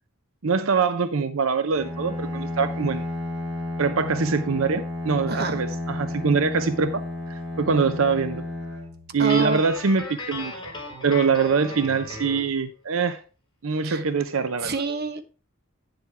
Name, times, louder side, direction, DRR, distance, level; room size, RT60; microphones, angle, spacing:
voice 1, 0.4-3.0 3.8-8.4 9.1-10.5 11.0-13.2 13.6-14.7, right 5 dB, 80° right, 11 dB, 0.7 m, -24 dB
Bowed string instrument, 1.7-9.7, left 2 dB, 35° right, 5.8 m, -32 dB
voice 2, 5.3-5.6 9.2-9.6 13.8-14.0 14.6-15.2, right 2 dB, 50° right, 8 dB, 1.1 m, -27 dB
Guitar, 9.3-12.5, left 2 dB, 20° left, 4.6 m, -36 dB
9.6 x 7.6 x 3.4 m, 0.35 s
head